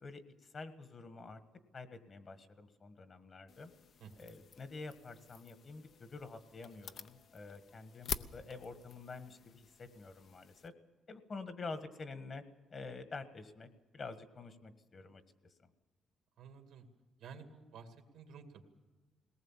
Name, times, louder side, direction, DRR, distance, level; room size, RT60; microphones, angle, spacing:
voice 1, 0.0-1.4 1.7-3.7 4.2-10.7 11.1-12.4 12.7-15.7, left 3 dB, 45° left, 10 dB, 1.5 m, -48 dB
sound 1, 3.5-10.7, left 7 dB, 60° left, 0.6 m, -48 dB
voice 2, 4.0-4.3 16.4-16.8 17.2-18.6, right 6 dB, 85° right, 5 dB, 2.2 m, -53 dB
20.5 x 18.5 x 7.4 m, 1.2 s
cardioid pair, 90°, 0 cm